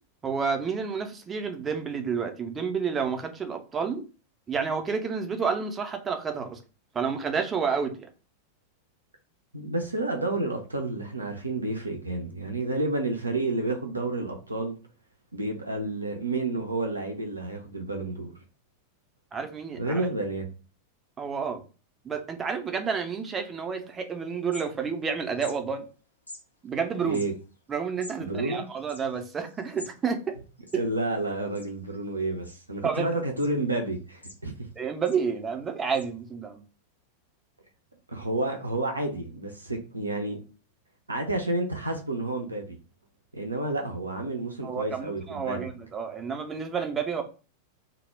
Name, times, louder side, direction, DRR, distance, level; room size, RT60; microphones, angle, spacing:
voice 1, 0.2-4.0 4.5-6.6 6.9-8.1 19.3-20.1 21.2-21.6 22.0-25.9 26.6-27.2 27.7-30.3 30.7-30.8 32.8-33.1 34.8-36.6 44.6-47.2, right 6 dB, 20° right, 0.4 m, -30 dB
voice 2, 9.5-14.8 15.3-18.3 19.8-20.5 27.0-27.3 28.2-28.7 30.7-34.5 38.1-40.4 41.1-42.8 43.3-45.7, right 2 dB, 80° right, 0.4 m, -30 dB
sound 1, 23.9-24.0 24.3-25.1 25.3-25.6 26.3-26.4 27.0-30.0 30.3-30.4 30.6-31.2 31.5-32.0 32.4-32.9 33.4-33.5 33.9-34.7 35.0-35.2 35.9-36.1, left 2 dB, 85° left, 0.4 m, -46 dB
2.0 x 2.0 x 3.1 m
figure-of-eight pair, 90°, 0 cm